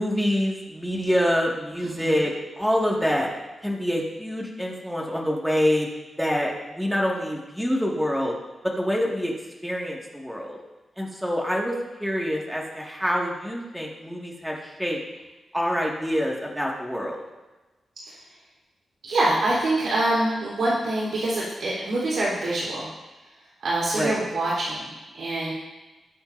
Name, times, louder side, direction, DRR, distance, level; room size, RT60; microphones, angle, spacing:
voice 1, 0.0-2.3 2.6-3.3 3.6-5.9 6.2-8.3 8.8-9.3 9.6-10.6 11.0-11.7 12.0-15.0 15.5-17.2 23.9-24.2, equal, ahead, -2 dB, 1.9 m, -26 dB
voice 2, 1.8-2.2 18.1-18.2 19.0-22.9 23.6-25.5, right 2 dB, 70° right, -7 dB, 3.7 m, -25 dB
20.0 x 8.7 x 2.6 m, 1.1 s
wide cardioid pair, 155°, 0 cm